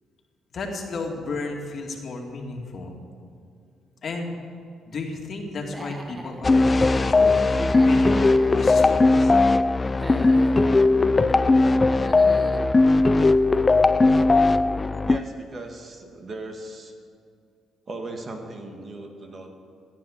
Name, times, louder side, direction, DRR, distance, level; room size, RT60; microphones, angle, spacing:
voice 1, 0.5-3.0 4.0-4.4 4.9-7.5 7.8-9.3, left 3 dB, 50° left, 2 dB, 2.2 m, -33 dB
Human voice / Animal, 5.6-6.4 7.6-8.5 9.8-10.7 11.8-12.7, right 1 dB, 15° right, 1.3 m, -38 dB
sound 1, 6.4-15.2, left 3 dB, 25° left, 0.4 m, -18 dB
voice 2, 15.0-16.9 17.9-19.5, right 2 dB, 40° right, 3 dB, 2.0 m, -38 dB
14.5 x 9.7 x 6.4 m, 2.4 s
cardioid pair, 90°, 0 cm